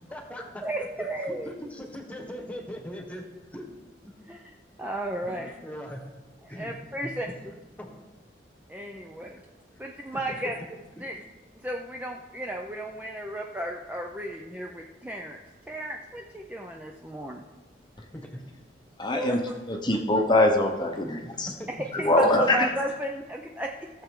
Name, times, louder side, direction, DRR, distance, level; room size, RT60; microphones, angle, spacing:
voice 1, 0.1-0.9 1.3-3.3 3.5-3.7 4.0-4.1 5.2-6.1 6.5-6.8 7.0-7.1 7.8-7.9 10.1-10.5 18.1-18.4 21.0-21.9, equal, 10° left, 3 dB, 1.3 m, -40 dB
voice 2, 0.6-1.5 4.3-4.4 4.8-5.5 6.5-7.3 8.7-9.4 9.8-10.6 11.0-11.2 11.6-15.4 15.7-17.4 19.1-19.5 21.7-23.9, right 1 dB, 10° right, 1 dB, 0.5 m, -34 dB
voice 3, 19.0-19.4 19.7-21.5 22.0-22.7, left 1 dB, 25° left, 3 dB, 0.9 m, -23 dB
16.5 x 7.2 x 3.8 m, 1.2 s
head